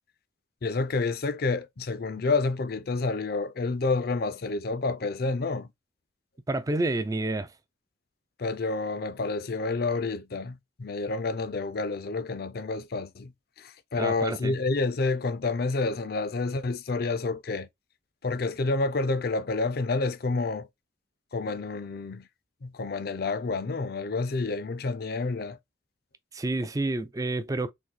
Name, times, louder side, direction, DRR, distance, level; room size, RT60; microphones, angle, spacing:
voice 1, 0.6-5.7 8.4-13.3 13.6-17.7 18.2-20.7 21.3-22.3 22.6-25.6, left 3 dB, 55° left, 0.5 m, -29 dB
voice 2, 6.5-7.5 14.0-14.5 26.3-27.7, right 2 dB, 20° right, 0.4 m, -29 dB
3.9 x 2.6 x 4.4 m
head